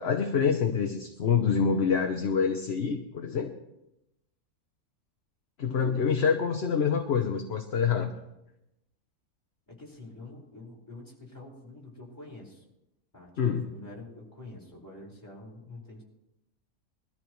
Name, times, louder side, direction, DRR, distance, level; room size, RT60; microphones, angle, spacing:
voice 1, 0.0-3.5 5.6-8.1 13.4-13.6, left 6 dB, 55° left, 5 dB, 1.1 m, -26 dB
voice 2, 5.7-6.2 9.7-12.6 13.1-13.3 13.6-16.0, left 2 dB, 15° left, -4 dB, 4.6 m, -46 dB
21.5 x 13.5 x 3.1 m, 0.88 s
omnidirectional pair, 1.5 m